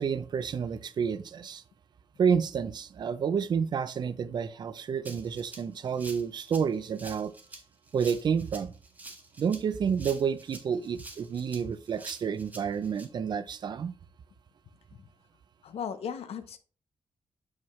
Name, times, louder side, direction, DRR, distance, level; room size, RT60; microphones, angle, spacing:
voice 1, 0.0-1.6 2.2-7.3 7.9-8.7 9.4-13.9, right 7 dB, 45° right, 0.4 m, -29 dB
Rattle (instrument), 5.0-13.0, right 2 dB, 15° right, 1.2 m, -47 dB
voice 2, 15.6-16.6, left 7 dB, 75° left, 0.6 m, -37 dB
7.1 x 4.7 x 3.1 m
wide cardioid pair, 160°, 10 cm